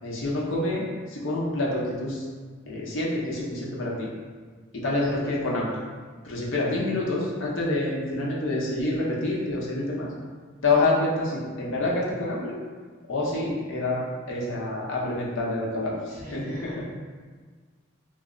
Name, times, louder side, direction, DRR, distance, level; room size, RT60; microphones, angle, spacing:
voice 1, 0.0-2.2 2.7-4.1 4.7-5.7 6.2-10.1 10.6-12.6 13.1-16.9, left 2 dB, 65° left, -4 dB, 0.7 m, -27 dB
voice 2, 16.2-16.9, equal, 40° right, -9 dB, 1.1 m, -44 dB
3.0 x 2.0 x 3.7 m, 1.5 s
head